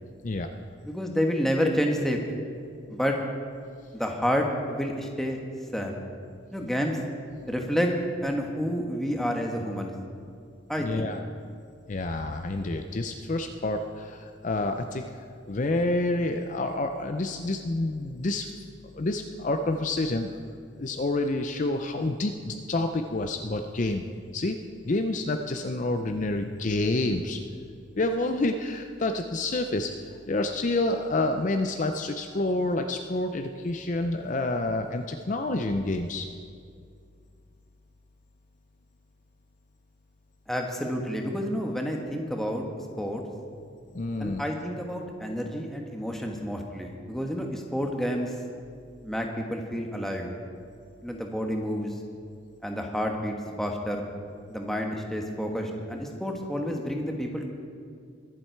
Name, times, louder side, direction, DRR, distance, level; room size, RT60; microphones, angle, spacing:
voice 1, 0.8-2.2 2.9-3.2 3.9-5.4 5.7-6.0 6.5-7.0 7.5-7.9 8.2-9.9 10.7-11.1 40.5-42.6 43.0-43.2 44.2-48.3 49.0-50.3 51.0-51.9 52.6-54.1 54.5-57.5, equal, ahead, 1 dB, 1.2 m, -29 dB
voice 2, 10.8-11.2 11.9-18.7 19.0-20.4 20.8-24.0 24.3-24.6 24.8-27.4 28.0-36.3 43.9-44.4, left 2 dB, 40° left, 6 dB, 0.5 m, -28 dB
22.5 x 7.6 x 4.5 m, 2.3 s
head